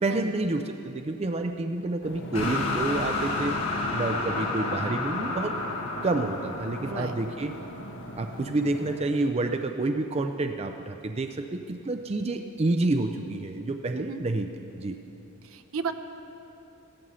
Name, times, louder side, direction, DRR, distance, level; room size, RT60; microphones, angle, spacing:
voice 1, 0.0-3.6 3.9-5.6 6.0-7.5 8.2-14.5 14.8-15.0, right 2 dB, 30° right, 6 dB, 0.5 m, -29 dB
sound 1, 2.0-9.0, left 1 dB, 55° left, 1.1 m, -42 dB
sound 2, 2.3-8.4, left 3 dB, 75° left, 1.8 m, -31 dB
voice 2, 6.8-7.2 14.0-14.2 15.4-15.9, right 4 dB, 65° right, 8 dB, 0.8 m, -34 dB
15.5 x 13.0 x 5.6 m, 2.8 s
head